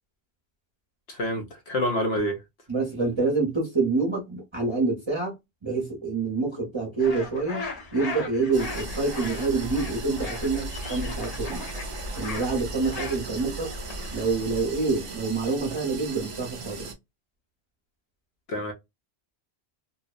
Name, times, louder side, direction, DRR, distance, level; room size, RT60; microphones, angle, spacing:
voice 1, 1.1-2.4 18.5-18.7, left 1 dB, 70° left, 1.0 m, -27 dB
voice 2, 2.7-5.3 5.6-7.6 7.9-11.6 12.2-13.7 14.1-16.9, right 3 dB, 30° right, 0.7 m, -27 dB
sound 1, 7.0-15.0, left 3 dB, 40° left, 0.7 m, -38 dB
sound 2, 8.5-16.9, right 2 dB, 55° right, 0.3 m, -37 dB
2.7 x 2.0 x 2.3 m
omnidirectional pair, 1.1 m